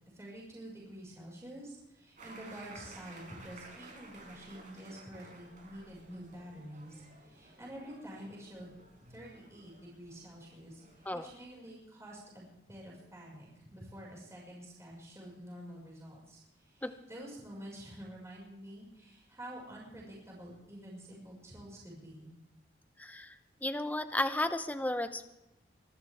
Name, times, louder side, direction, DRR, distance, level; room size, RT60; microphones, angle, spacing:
voice 1, 0.1-8.8 9.1-10.8 11.1-22.3, right 1 dB, 15° right, -4 dB, 6.0 m, -48 dB
sound 1, 2.2-11.4, right 2 dB, 45° right, 4.9 m, -55 dB
voice 2, 23.0-23.3 23.6-25.3, left 1 dB, 10° left, 9 dB, 0.8 m, -33 dB
24.5 x 13.0 x 3.6 m, 0.91 s
head